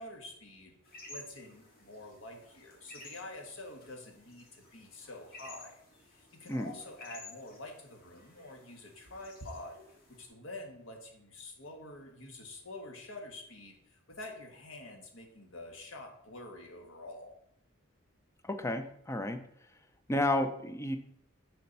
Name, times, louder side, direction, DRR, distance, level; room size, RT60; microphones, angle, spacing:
voice 1, 0.0-5.7 6.0-9.8 10.1-17.3, left 2 dB, 70° left, 2 dB, 1.6 m, -47 dB
sound 1, 0.8-10.2, left 2 dB, 45° left, 2.1 m, -54 dB
voice 2, 18.4-19.4 20.1-21.0, left 1 dB, 15° left, 7 dB, 0.6 m, -31 dB
6.9 x 4.4 x 5.5 m, 0.71 s
head